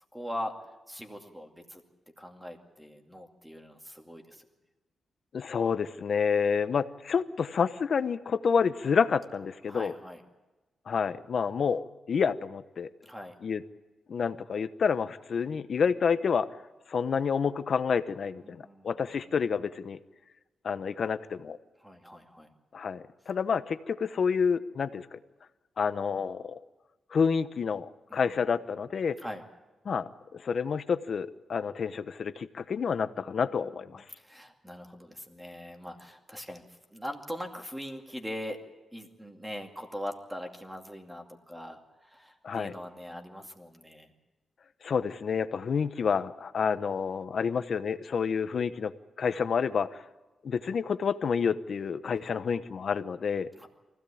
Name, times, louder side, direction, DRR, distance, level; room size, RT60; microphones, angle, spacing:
voice 1, 0.1-0.6 0.9-1.8 2.2-4.4 9.7-10.2 13.0-13.3 18.3-19.3 21.8-22.5 28.1-28.5 29.2-29.4 33.0-38.6 38.9-44.1 53.6-53.7, equal, 5° right, 4 dB, 2.4 m, -42 dB
voice 2, 5.3-9.9 10.9-12.9 13.4-13.6 14.1-16.5 16.9-20.0 20.6-21.6 22.7-25.2 25.8-26.4 27.1-29.2 29.9-34.0 42.4-42.7 44.8-48.9 49.2-50.0 50.4-53.5, left 6 dB, 50° left, 12 dB, 0.9 m, -29 dB
24.0 x 16.5 x 8.6 m, 1.2 s
wide cardioid pair, 150°, 0 cm